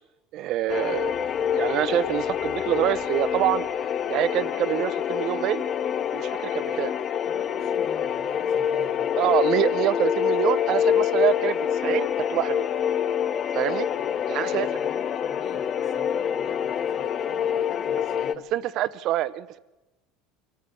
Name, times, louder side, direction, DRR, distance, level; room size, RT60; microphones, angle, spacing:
voice 1, 0.3-1.1 1.5-3.6 4.1-5.6 6.1-6.9 9.2-12.7 13.5-13.9 14.3-14.7 18.5-19.6, right 13 dB, 50° right, 0.8 m, -26 dB
sound 1, 0.7-18.3, left 8 dB, 35° left, 0.7 m, -26 dB
voice 2, 7.2-9.2 13.9-18.5, left 7 dB, 50° left, 2.1 m, -44 dB
24.5 x 14.0 x 8.4 m
cardioid pair, 140°, 0 cm